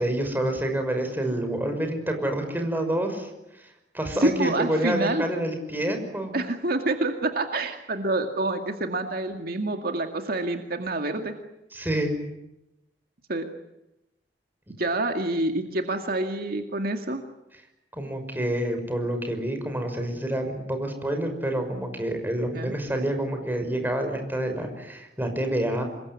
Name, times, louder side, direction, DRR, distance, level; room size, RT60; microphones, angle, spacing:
voice 1, 0.0-3.3 3.6-3.7 3.9-6.3 11.7-12.1 14.7-14.8 17.9-25.8, right 1 dB, 10° right, 5 dB, 5.9 m, -28 dB
voice 2, 4.2-5.2 6.3-11.3 13.3-13.5 14.8-17.2 22.5-22.7, right 2 dB, 55° right, 5 dB, 2.2 m, -27 dB
27.0 x 22.5 x 9.8 m, 0.89 s
head